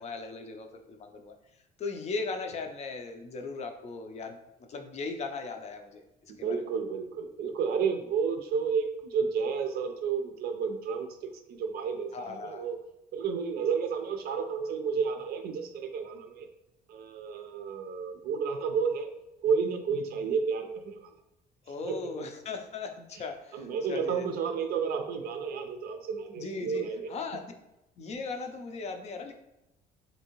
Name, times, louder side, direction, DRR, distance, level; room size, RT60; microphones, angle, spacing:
voice 1, 0.0-1.3 1.8-4.4 4.7-6.6 12.1-12.7 21.7-24.3 26.4-27.5 28.0-29.3, left 4 dB, 40° left, 5 dB, 0.4 m, -38 dB
voice 2, 6.4-12.8 13.1-16.5 16.9-19.1 19.4-21.1 21.9-22.3 23.5-27.1, right 6 dB, 65° right, 5 dB, 0.4 m, -31 dB
3.3 x 2.7 x 2.9 m, 0.94 s
cardioid pair, 110°, 17 cm